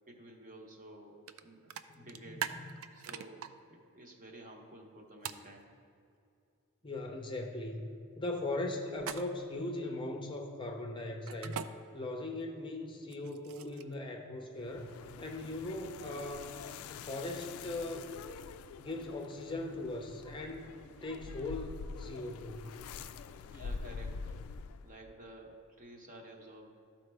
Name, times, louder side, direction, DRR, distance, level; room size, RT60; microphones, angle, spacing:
voice 1, 0.1-2.5 2.9-5.7 23.4-24.4 24.8-26.7, right 1 dB, 40° right, 1 dB, 0.9 m, -52 dB
sound 1, 1.3-1.4 1.7-3.5 5.2-5.5 9.0-9.5 11.3-11.7 13.0-13.9, right 8 dB, 70° right, 0.4 m, -40 dB
voice 2, 1.9-2.7 6.8-11.6 11.9-16.6 16.9-18.1 18.8-22.8, left 2 dB, 20° left, 2 dB, 0.6 m, -39 dB
sound 2, 14.6-25.0, left 5 dB, 75° left, 0.3 m, -46 dB
13.0 x 4.3 x 3.4 m, 2.5 s
head